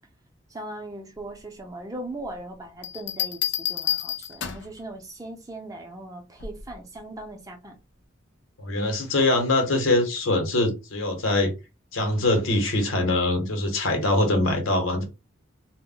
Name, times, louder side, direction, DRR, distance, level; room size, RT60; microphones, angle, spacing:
voice 1, 0.5-7.7, right 1 dB, 15° right, 0.5 m, -39 dB
sound 1, 2.8-4.8 6.4-6.7, left 11 dB, 65° left, 0.4 m, -29 dB
voice 2, 8.6-11.5 11.9-15.0, left 2 dB, 90° left, 0.9 m, -23 dB
2.1 x 2.1 x 3.7 m
head